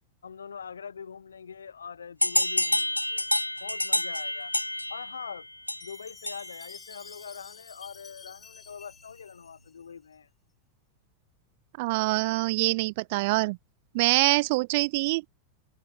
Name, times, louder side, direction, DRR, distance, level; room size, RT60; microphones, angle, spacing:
voice 1, 0.2-3.3 3.6-4.5 4.9-5.5 5.8-10.3, left 6 dB, 70° left, 2.6 m, -43 dB
sound 1, 2.2-6.7, left 1 dB, 85° left, 0.4 m, -28 dB
Chime, 5.8-10.1, left 6 dB, 15° left, 7.8 m, -50 dB
voice 2, 11.8-13.6 13.9-15.3, right 24 dB, 50° right, 0.5 m, -25 dB
figure-of-eight pair, 90°, 0 cm